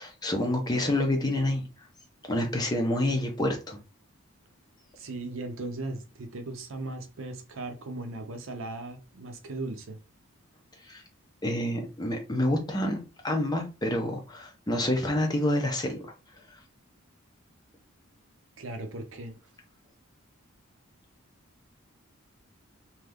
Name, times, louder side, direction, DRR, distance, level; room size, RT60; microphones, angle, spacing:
voice 1, 0.0-1.6 2.3-3.8 10.8-11.0 11.4-16.1 16.5-16.6, left 1 dB, 20° left, 0.6 m, -28 dB
voice 2, 5.0-10.0 18.6-19.4, right 2 dB, 65° right, 0.6 m, -37 dB
2.6 x 2.4 x 3.3 m
head